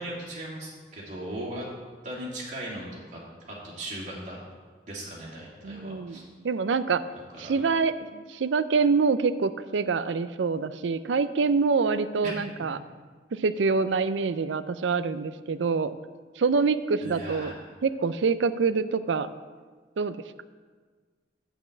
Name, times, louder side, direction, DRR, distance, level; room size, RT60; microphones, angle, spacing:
voice 1, 0.0-1.7 2.0-3.2 3.5-4.4 4.9-6.2 7.4-7.5 17.0-17.6, right 1 dB, 40° right, -5 dB, 2.8 m, -38 dB
voice 2, 5.6-7.0 7.4-12.8 13.3-15.9 16.4-17.5 17.8-19.3 20.0-20.4, right 4 dB, 85° right, 13 dB, 0.5 m, -26 dB
8.4 x 5.7 x 8.0 m, 1.5 s
head